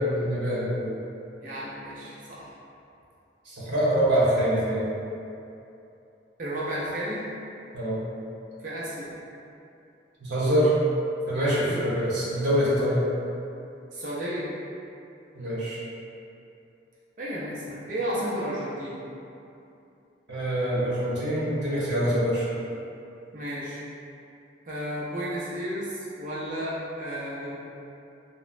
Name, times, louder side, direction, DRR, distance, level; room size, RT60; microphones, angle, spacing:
voice 1, 0.0-0.9 3.4-4.8 7.7-8.0 10.2-10.7 11.3-13.0 15.3-15.8 20.3-22.4, equal, 70° right, -9 dB, 0.8 m, -25 dB
voice 2, 1.4-2.5 6.4-7.2 8.6-9.2 11.6-11.8 13.9-14.5 17.2-19.0 23.3-23.8 24.7-27.6, equal, 45° right, -8 dB, 0.4 m, -33 dB
2.9 x 2.0 x 2.4 m, 2.7 s
head